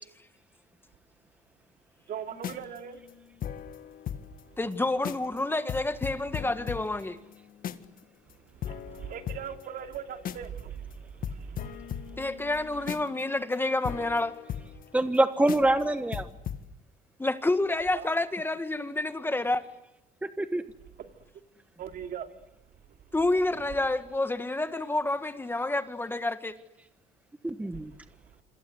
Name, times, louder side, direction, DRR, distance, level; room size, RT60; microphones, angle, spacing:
voice 1, 2.1-3.0 4.6-4.7 8.4-12.2 17.9-18.1 21.0-21.2 21.8-22.3 23.5-23.6 27.7-28.0, right 8 dB, 60° right, 3.0 m, -40 dB
sound 1, 2.3-4.4 4.7-4.8 5.0-5.4 5.7-8.0 8.3-8.4 8.6-10.6 10.9-11.0 11.2-15.2 15.5-15.8 16.1-16.6, left 9 dB, 55° left, 1.8 m, -38 dB
voice 2, 4.6-7.2 12.2-14.3 17.2-19.6 23.1-26.5, left 2 dB, 15° left, 1.7 m, -28 dB
voice 3, 14.9-16.3 20.4-20.6 27.4-27.9, right 1 dB, 10° right, 1.2 m, -25 dB
27.5 x 26.5 x 8.0 m
cardioid pair, 110°, 17 cm